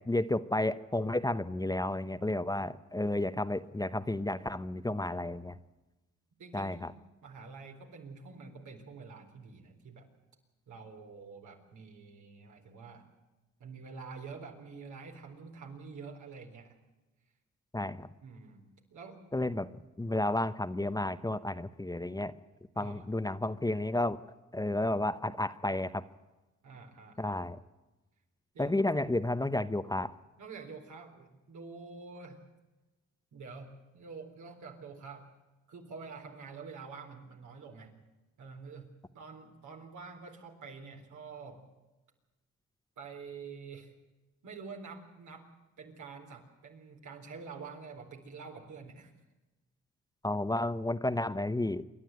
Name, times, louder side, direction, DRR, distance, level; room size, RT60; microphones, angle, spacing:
voice 1, 0.0-5.6 6.5-6.9 17.7-18.1 19.3-19.7 20.0-22.3 22.8-24.2 24.5-26.0 27.2-27.6 28.6-30.1 50.2-51.8, left 1 dB, 15° left, 11 dB, 0.9 m, -32 dB
voice 2, 6.4-7.0 7.2-10.1 10.7-13.1 13.6-16.8 18.2-18.6 18.9-19.2 22.7-23.1 26.6-27.4 28.5-28.8 30.4-32.4 33.3-35.3 35.7-38.0 38.4-38.9 39.1-41.6 43.0-43.9 44.4-45.5 45.8-49.1, right 4 dB, 80° right, 2 dB, 4.1 m, -47 dB
27.5 x 11.5 x 9.3 m, 1.1 s
cardioid pair, 75°, 29 cm